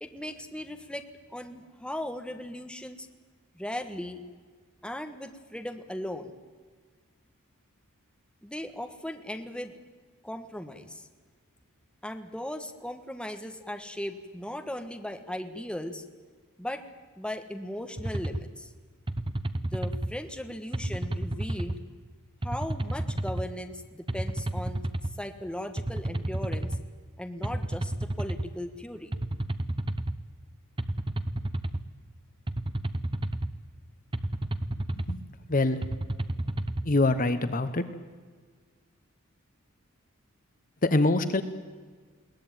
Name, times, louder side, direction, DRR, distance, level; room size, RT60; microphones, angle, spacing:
voice 1, 0.0-1.0 1.3-3.1 3.5-4.2 4.8-6.3 8.4-9.7 10.2-11.1 12.0-16.0 16.6-16.8 17.2-18.7 19.6-21.8 22.4-24.9 25.2-26.8 27.2-29.1, left 1 dB, 5° left, 6 dB, 1.4 m, -37 dB
sound 1, 18.0-18.4 19.1-20.1 20.7-21.8 22.4-23.4 24.1-25.1 25.8-26.8 27.4-28.5 29.1-30.1 30.8-31.8 32.5-33.5 34.1-35.2 35.8-36.8, right 1 dB, 25° right, 0.9 m, -31 dB
voice 2, 36.9-37.8 40.9-41.4, left 2 dB, 40° left, 11 dB, 0.9 m, -24 dB
22.0 x 18.0 x 9.2 m, 1.5 s
head